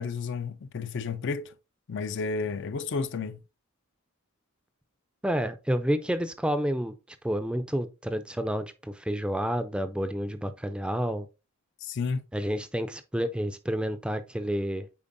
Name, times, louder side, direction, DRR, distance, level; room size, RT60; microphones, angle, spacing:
voice 1, 0.0-1.5 1.9-3.4 11.8-12.2, left 4 dB, 55° left, 0.4 m, -31 dB
voice 2, 5.2-6.9 7.2-11.3 12.3-14.9, equal, 5° right, 0.4 m, -29 dB
8.6 x 4.5 x 2.6 m
head